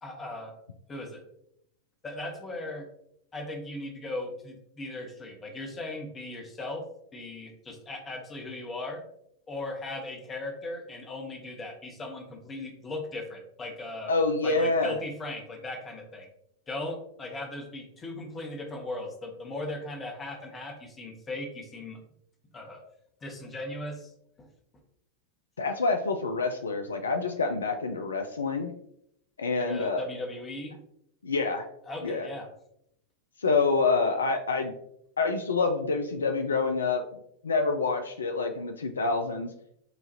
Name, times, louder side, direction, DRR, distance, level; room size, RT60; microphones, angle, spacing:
voice 1, 0.0-0.6 0.9-1.2 2.0-2.9 3.3-6.9 7.1-9.0 9.5-14.1 14.4-16.3 16.7-22.0 22.5-22.8 23.2-24.1 24.4-24.5 29.6-30.8 31.9-32.5, left 2 dB, 20° left, 2 dB, 0.9 m, -38 dB
voice 2, 14.1-15.0 25.6-28.7 29.4-30.0 31.2-31.7 32.0-32.3 33.4-34.7 35.2-37.0 37.4-39.5, left 4 dB, 70° left, 6 dB, 0.4 m, -27 dB
6.8 x 2.5 x 2.7 m, 0.74 s
figure-of-eight pair, 90°, 0 cm